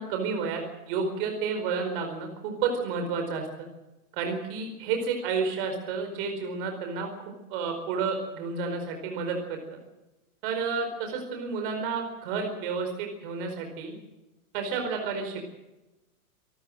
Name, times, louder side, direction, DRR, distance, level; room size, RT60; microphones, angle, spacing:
voice 1, 0.0-3.7 4.1-7.1 7.5-9.8 10.4-13.9 14.5-15.4, right 5 dB, 35° right, 4 dB, 4.6 m, -31 dB
27.0 x 14.0 x 7.8 m, 1.0 s
hypercardioid pair, 170°, 44 cm